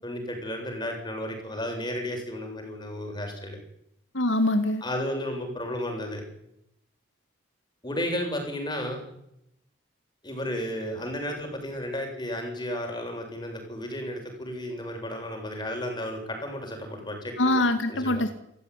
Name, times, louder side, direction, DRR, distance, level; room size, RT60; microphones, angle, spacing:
voice 1, 0.0-3.6 4.8-6.2 7.8-9.0 10.2-17.6 17.9-18.2, left 1 dB, 20° left, 3 dB, 7.7 m, -33 dB
voice 2, 4.1-4.8 17.4-18.3, left 1 dB, 80° left, 8 dB, 2.3 m, -23 dB
28.5 x 15.0 x 10.0 m, 0.80 s
head